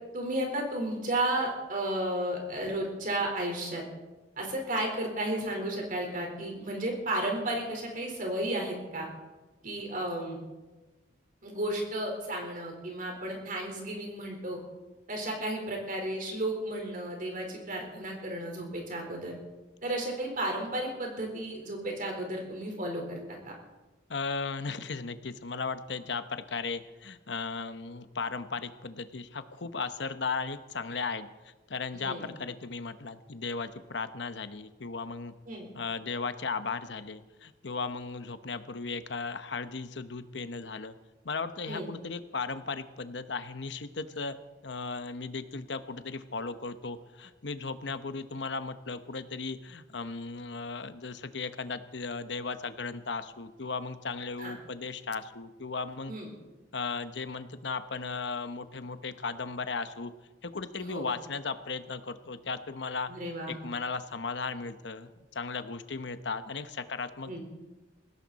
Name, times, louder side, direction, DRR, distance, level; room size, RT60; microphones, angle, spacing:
voice 1, 0.1-3.8 4.4-9.1 9.6-10.4 11.4-14.6 15.1-19.3 19.8-23.5 31.9-32.3 35.5-35.7 41.7-41.9 54.4-54.5 56.1-56.3 60.8-61.1 63.1-63.6 67.3-67.4, right 1 dB, 50° right, 1 dB, 4.2 m, -33 dB
voice 2, 24.1-31.3 31.7-35.3 35.7-40.9 41.2-44.4 44.6-56.1 56.7-60.1 60.4-63.1 63.5-67.4, left 4 dB, 70° left, 11 dB, 1.0 m, -36 dB
20.0 x 16.5 x 4.2 m, 1.2 s
head